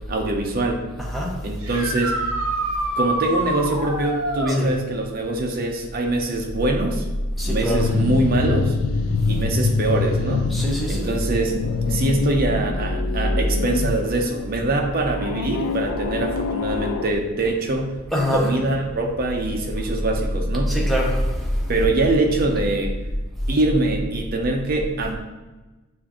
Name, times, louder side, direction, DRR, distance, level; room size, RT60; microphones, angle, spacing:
voice 1, 0.1-0.8 1.4-2.2 3.0-7.1 7.4-8.8 9.3-10.6 10.9-11.6 11.9-18.0 18.3-20.8 21.7-22.9 23.5-25.2, right 2 dB, 40° right, 2 dB, 0.6 m, -23 dB
voice 2, 1.0-1.3 4.5-4.7 7.4-7.9 10.5-11.1 18.1-18.5 20.7-21.4, equal, ahead, -3 dB, 0.7 m, -23 dB
sound 1, 1.6-4.6 7.9-8.0 10.0-10.1 16.4-16.5, right 2 dB, 70° right, 0.8 m, -26 dB
sound 2, 7.8-10.9 11.2-14.3 15.1-17.1, left 4 dB, 70° left, 0.3 m, -25 dB
6.7 x 2.5 x 2.9 m, 1.1 s
head